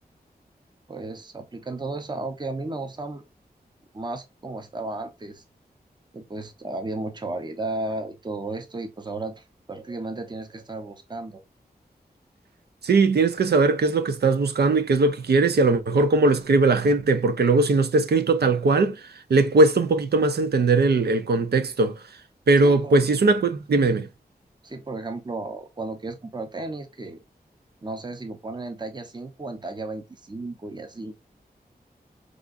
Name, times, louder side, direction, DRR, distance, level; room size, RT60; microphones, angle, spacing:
voice 1, 0.9-3.2 3.9-5.4 6.1-11.4 22.6-23.0 24.6-27.2 27.8-31.1, right 2 dB, 25° right, 0.7 m, -34 dB
voice 2, 12.8-22.0 22.5-24.1, right 3 dB, 85° right, 0.6 m, -20 dB
4.9 x 2.5 x 2.5 m
wide cardioid pair, 55°, 16 cm